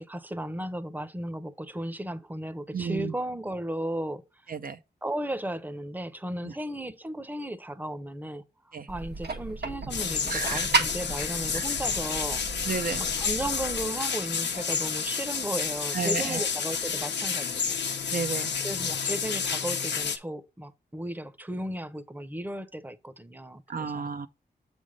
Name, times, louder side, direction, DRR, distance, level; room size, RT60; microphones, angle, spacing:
voice 1, 0.0-4.2 5.0-17.8 18.6-24.1, right 1 dB, 10° right, 0.8 m, -35 dB
voice 2, 2.7-3.1 4.5-4.8 6.4-6.5 8.7-8.9 10.3-10.7 11.5-11.6 12.6-13.0 15.9-16.4 18.1-18.5 23.7-24.3, right 5 dB, 55° right, 0.6 m, -32 dB
sound 1, 8.9-13.9, right 3 dB, 75° right, 1.3 m, -33 dB
sound 2, 9.9-20.2, left 6 dB, 90° left, 0.9 m, -30 dB
7.3 x 3.5 x 5.1 m
cardioid pair, 55°, 17 cm